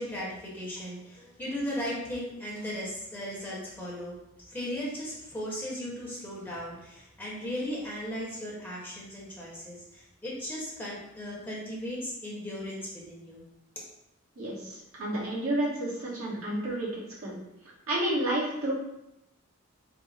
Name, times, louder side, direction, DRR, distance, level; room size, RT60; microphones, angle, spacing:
voice 1, 0.0-13.4, equal, 10° left, -6 dB, 1.0 m, -37 dB
voice 2, 14.4-17.3 17.9-18.7, right 1 dB, 75° right, -5 dB, 1.3 m, -30 dB
4.5 x 2.0 x 4.0 m, 0.86 s
head